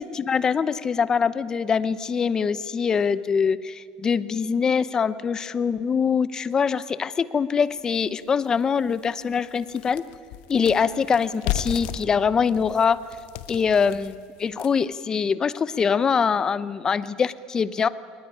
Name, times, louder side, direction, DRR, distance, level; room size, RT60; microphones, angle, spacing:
voice 1, 0.0-10.0 10.5-13.0 13.5-17.9, left 6 dB, 25° left, 15 dB, 0.8 m, -23 dB
sound 1, 7.8-7.9 8.4-8.5 8.9-14.9, left 11 dB, 75° left, 1.2 m, -34 dB
22.5 x 20.0 x 10.0 m, 2.1 s
cardioid pair, 145°, 3 cm